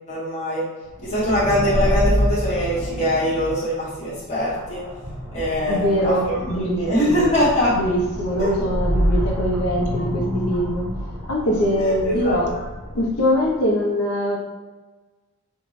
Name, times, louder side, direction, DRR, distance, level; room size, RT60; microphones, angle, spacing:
voice 1, 0.1-0.6 1.0-4.8 5.3-6.1 6.8-7.7 8.4-8.5 11.8-12.4, equal, 30° left, -9 dB, 1.2 m, -22 dB
sound 1, 0.9-13.5, equal, ahead, 0.9 m, -27 dB
voice 2, 5.7-7.3 7.7-10.9 11.3-12.7 12.9-14.5, equal, 75° left, -1 dB, 0.6 m, -22 dB
2.5 x 2.2 x 3.1 m, 1.3 s
head